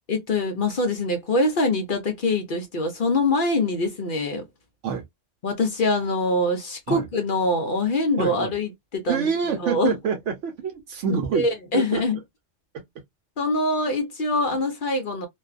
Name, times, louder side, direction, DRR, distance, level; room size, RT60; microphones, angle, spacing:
voice 1, 0.1-4.4 5.4-9.3 9.6-9.9 11.1-12.2 13.4-15.3, left 2 dB, 50° left, 0.7 m, -24 dB
voice 2, 8.2-8.5 9.1-12.0 12.7-12.8, right 6 dB, 75° right, 0.9 m, -27 dB
2.5 x 2.2 x 2.3 m
omnidirectional pair, 1.3 m